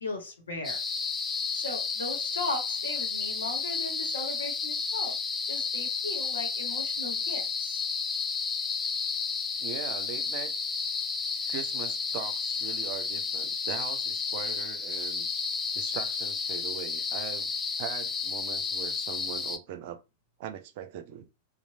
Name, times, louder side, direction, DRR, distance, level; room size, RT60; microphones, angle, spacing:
voice 1, 0.0-0.8 1.5-5.1 5.5-7.8, left 2 dB, 70° left, 0.9 m, -37 dB
sound 1, 0.6-19.6, left 5 dB, 20° left, 0.3 m, -32 dB
voice 2, 9.6-10.5 11.5-15.3 15.7-20.0 20.4-21.3, right 10 dB, 50° right, 0.4 m, -40 dB
3.0 x 2.4 x 2.5 m
figure-of-eight pair, 90°, 0 cm